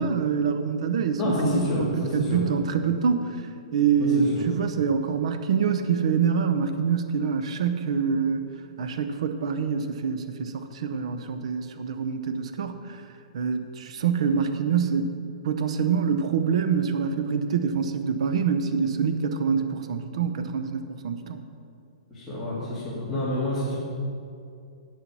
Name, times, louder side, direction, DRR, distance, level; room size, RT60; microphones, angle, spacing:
voice 1, 0.0-3.4 3.7-8.4 8.8-13.0 13.3-15.1 15.4-21.4, right 6 dB, 65° right, 8 dB, 0.7 m, -25 dB
voice 2, 1.2-2.4 4.0-4.4 22.1-23.8, left 1 dB, 5° left, -12 dB, 2.1 m, -28 dB
9.3 x 6.9 x 6.1 m, 2.5 s
hypercardioid pair, 155°, 4 cm